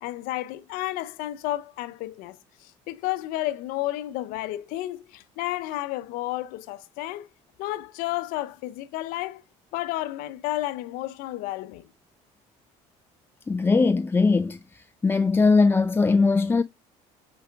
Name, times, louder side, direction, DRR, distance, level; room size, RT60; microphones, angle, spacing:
voice 1, 0.0-7.3 7.6-9.4 9.7-11.9, left 16 dB, 75° left, 0.6 m, -32 dB
voice 2, 13.5-14.6 15.0-16.6, left 4 dB, 15° left, 0.4 m, -20 dB
8.0 x 4.8 x 3.4 m
supercardioid pair, 90°, 15 cm